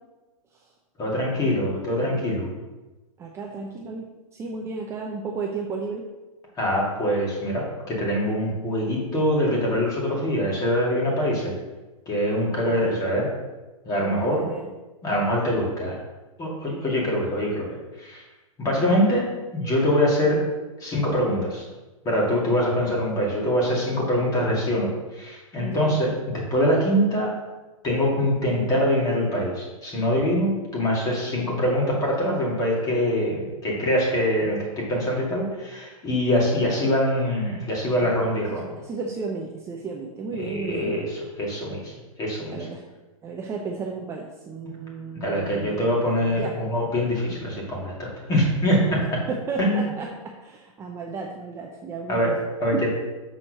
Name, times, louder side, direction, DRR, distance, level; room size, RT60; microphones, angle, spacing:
voice 1, 1.0-2.5 6.6-11.5 12.1-13.3 13.9-14.4 15.0-16.0 16.4-17.7 18.0-18.2 18.6-19.3 19.5-20.4 20.8-21.6 22.0-27.4 27.8-38.7 40.4-41.9 42.2-42.7 44.7-44.8 45.1-49.2 49.6-49.8 52.1-52.9, equal, 20° left, -3 dB, 2.4 m, -24 dB
voice 2, 3.2-4.0 4.3-6.0 12.5-13.1 14.0-14.7 25.6-25.8 38.0-38.1 38.5-40.9 42.5-42.8 43.2-46.6 49.3-50.1 50.4-52.4 52.7-52.8, right 4 dB, 15° right, 0 dB, 0.6 m, -34 dB
6.4 x 4.3 x 6.4 m, 1.1 s
hypercardioid pair, 145°, 18 cm